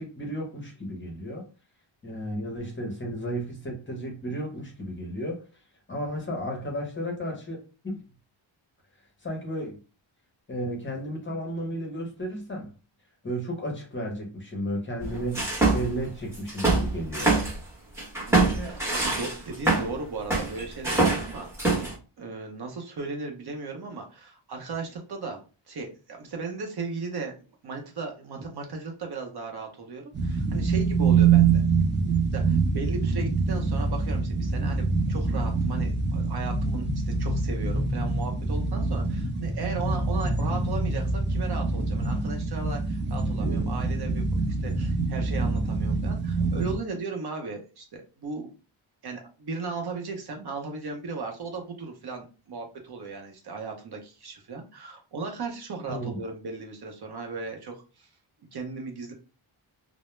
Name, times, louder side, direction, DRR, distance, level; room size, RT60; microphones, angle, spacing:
voice 1, 0.0-1.5 2.0-5.4 5.9-8.0 9.2-9.8 10.5-12.7 13.2-15.4 15.7-17.3 55.9-56.2, equal, 25° left, 0.7 m, -33 dB
sound 1, 15.0-16.0 16.3-17.6 18.0-19.9 20.3-21.9, right 3 dB, 5° right, 0.8 m, -24 dB
voice 2, 18.2-21.9 22.2-25.4 25.7-27.3 27.6-31.6 32.3-48.5 49.0-58.1 58.5-59.1, right 4 dB, 50° right, 0.7 m, -36 dB
sound 2, 30.1-46.8, right 4 dB, 25° right, 0.3 m, -25 dB
2.1 x 2.0 x 3.0 m
wide cardioid pair, 150°, 49 cm